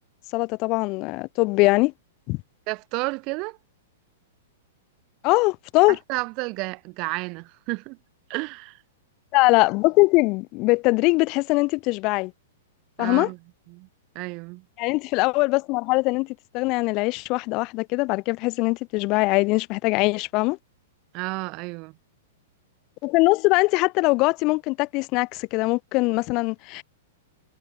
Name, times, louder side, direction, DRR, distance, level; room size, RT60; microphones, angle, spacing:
voice 1, 0.3-1.9 2.3-2.4 5.2-6.0 9.3-12.3 13.0-13.3 14.8-20.6 23.0-26.8, left 24 dB, 40° left, 0.3 m, -22 dB
voice 2, 2.7-3.6 5.9-8.0 8.3-8.8 13.0-13.4 13.7-13.9 14.1-14.6 21.1-22.0, right 28 dB, 45° right, 0.4 m, -31 dB
hypercardioid pair, 110°, 0 cm